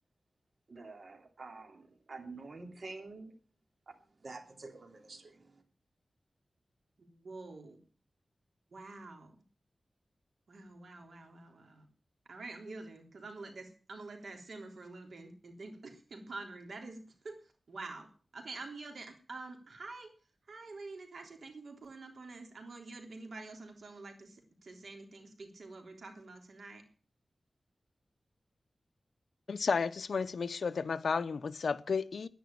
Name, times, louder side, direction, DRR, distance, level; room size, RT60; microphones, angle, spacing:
voice 1, 0.7-3.3 3.9-5.6, right 3 dB, 60° right, 2.8 m, -48 dB
voice 2, 7.0-7.8 8.7-9.3 10.5-11.9 12.3-17.4 17.7-18.1 18.3-20.1 20.5-26.8, right 3 dB, 80° right, 3.5 m, -47 dB
voice 3, 29.5-32.3, left 5 dB, 80° left, 0.7 m, -32 dB
10.5 x 10.5 x 8.5 m
wide cardioid pair, 80°, 0 cm